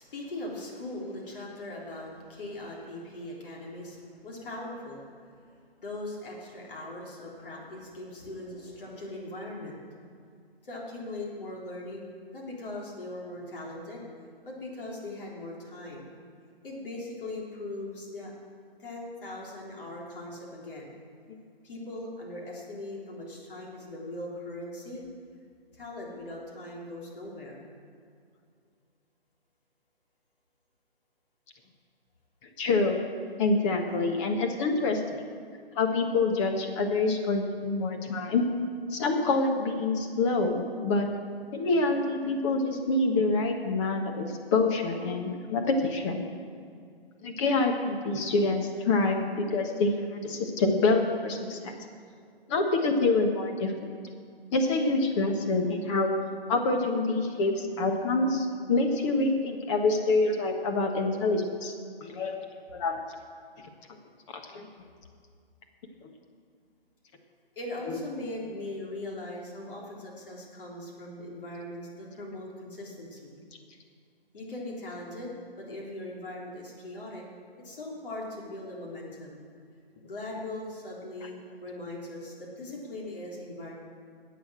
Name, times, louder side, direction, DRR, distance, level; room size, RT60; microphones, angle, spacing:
voice 1, 0.0-5.2 5.8-9.8 10.6-12.1 12.3-14.0 14.4-16.0 16.6-18.3 18.8-20.9 21.6-25.0 25.7-27.7 67.6-73.3 74.3-77.2 77.6-79.4 80.0-83.7, left 1 dB, 60° left, -3 dB, 3.6 m, -40 dB
voice 2, 32.6-33.1 33.4-35.0 35.7-38.4 38.9-41.1 41.5-46.2 47.2-51.7 52.5-53.7 54.5-56.1 56.5-61.7 62.0-62.4 62.7-63.0 64.3-64.7 67.9-68.0, left 3 dB, 30° left, 3 dB, 1.5 m, -26 dB
11.0 x 8.3 x 7.6 m, 2.2 s
figure-of-eight pair, 140°, 31 cm